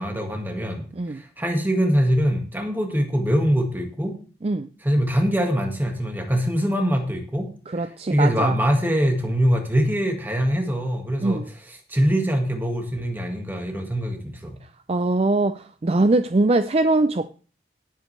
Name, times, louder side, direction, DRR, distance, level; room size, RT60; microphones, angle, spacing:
voice 1, 0.0-0.8 1.1-4.2 4.8-7.5 7.8-11.4 11.7-14.6, equal, 10° right, 1.7 m, -23 dB
voice 2, 7.7-8.5 11.2-11.4 14.9-17.3, right 2 dB, 35° right, 0.4 m, -22 dB
17.5 x 8.2 x 3.3 m
head